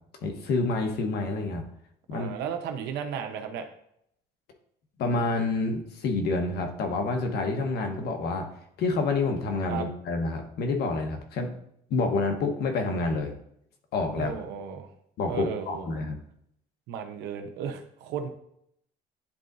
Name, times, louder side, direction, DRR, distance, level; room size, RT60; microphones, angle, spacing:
voice 1, 0.2-1.6 2.1-2.3 5.0-8.5 8.8-11.5 11.9-13.3 13.9-14.4 15.2-16.2, left 3 dB, 70° left, 4 dB, 1.2 m, -28 dB
voice 2, 2.1-3.6 9.7-9.9 14.2-14.9 15.3-16.1 16.9-18.3, right 7 dB, 90° right, 6 dB, 0.9 m, -34 dB
9.9 x 3.9 x 2.6 m, 0.73 s
cardioid pair, 110°, 17 cm